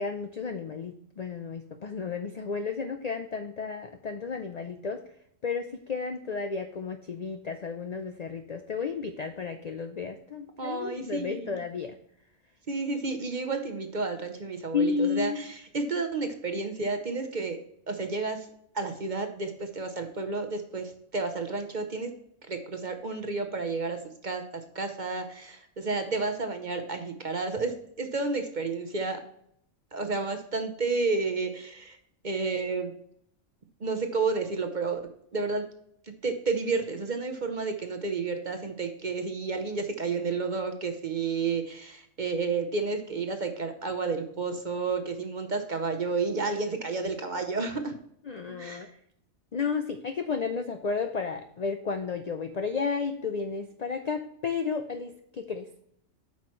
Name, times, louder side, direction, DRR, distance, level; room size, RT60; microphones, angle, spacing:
voice 1, 0.0-5.0 5.4-12.0 14.7-15.4 48.3-49.0 49.5-55.7, left 5 dB, 65° left, 8 dB, 0.4 m, -32 dB
voice 2, 10.6-11.6 12.7-17.6 17.9-18.5 18.7-22.1 22.5-29.2 29.9-32.0 32.2-32.9 33.8-35.0 35.3-35.6 36.1-47.9 48.6-48.9, right 4 dB, 40° right, 6 dB, 0.9 m, -31 dB
8.7 x 5.8 x 3.1 m, 0.70 s
omnidirectional pair, 1.4 m